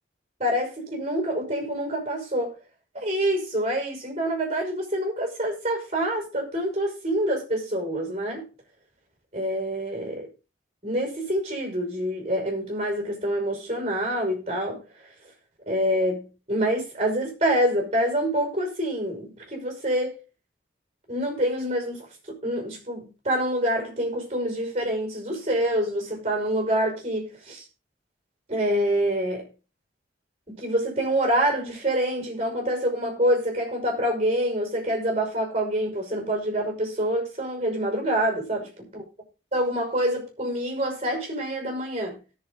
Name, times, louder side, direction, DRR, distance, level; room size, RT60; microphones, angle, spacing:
voice 1, 0.4-2.5 2.9-8.4 9.3-10.3 10.8-14.8 15.7-20.1 21.1-27.6 28.5-29.5 30.5-38.6 38.9-39.0 39.5-42.2, right 1 dB, 35° right, 5.8 m, -26 dB
18.0 x 7.1 x 3.8 m
head